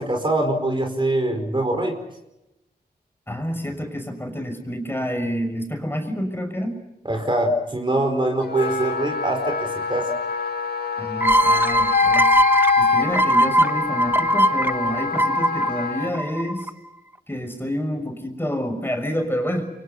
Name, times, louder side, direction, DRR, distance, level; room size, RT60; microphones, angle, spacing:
voice 1, 0.0-2.0 7.0-10.1, right 1 dB, 30° right, 4 dB, 4.9 m, -23 dB
voice 2, 3.3-6.8 11.0-12.3 12.8-16.7 17.3-19.7, equal, 15° left, 5 dB, 6.2 m, -28 dB
Wind instrument woodwind instrument, 8.4-16.1, left 5 dB, 65° left, 2.3 m, -25 dB
sound 1, 11.2-16.7, equal, 10° right, 1.1 m, -21 dB
29.0 x 24.5 x 5.7 m, 0.91 s
cardioid pair, 65°, 17 cm